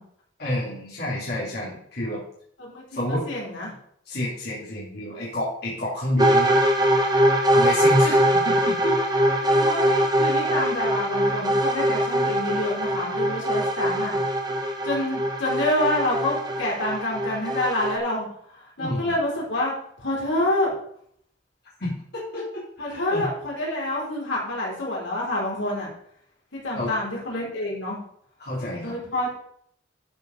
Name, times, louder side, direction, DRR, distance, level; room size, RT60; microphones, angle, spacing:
voice 1, 0.4-2.2 2.9-3.2 4.1-6.5 7.5-8.2 8.4-8.9 18.8-19.1 21.8-23.3 26.7-26.9 28.4-28.9, left 1 dB, 55° left, -6 dB, 3.2 m, -29 dB
voice 2, 2.6-3.7 8.0-8.1 9.4-14.2 14.8-20.7 22.8-25.9 26.5-28.0 28.8-29.3, left 1 dB, 80° left, -4 dB, 4.2 m, -27 dB
sound 1, 6.2-18.0, right 1 dB, 20° right, 1.2 m, -22 dB
12.0 x 5.1 x 5.5 m, 0.65 s
head